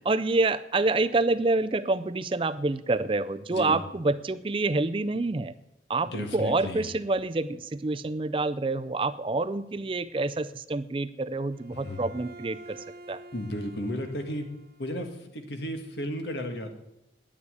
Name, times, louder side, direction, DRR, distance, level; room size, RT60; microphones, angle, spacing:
voice 1, 0.0-5.5 5.9-12.8 13.1-13.2, right 3 dB, 30° right, 15 dB, 0.4 m, -27 dB
voice 2, 6.0-6.9 11.7-12.0 13.3-14.5 14.8-16.7, equal, 80° left, 5 dB, 1.9 m, -34 dB
Bowed string instrument, 11.5-15.0, right 2 dB, 55° right, 0.8 m, -49 dB
9.8 x 9.7 x 9.4 m, 0.88 s
head